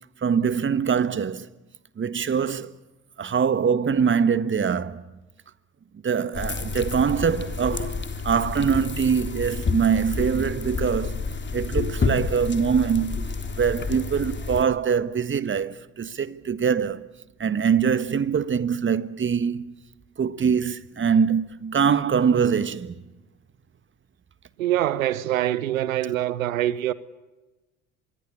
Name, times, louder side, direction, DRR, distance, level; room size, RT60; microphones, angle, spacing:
voice 1, 0.2-1.5 2.0-2.7 3.2-5.0 6.0-8.0 8.2-11.2 11.5-13.3 13.6-17.1 17.4-19.7 20.2-23.0, right 6 dB, 30° right, 1.6 m, -23 dB
sound 1, 6.3-14.6, left 4 dB, 30° left, 3.6 m, -29 dB
voice 2, 24.6-26.9, right 13 dB, 85° right, 1.0 m, -24 dB
25.5 x 22.5 x 8.5 m
hypercardioid pair, 60°, 39 cm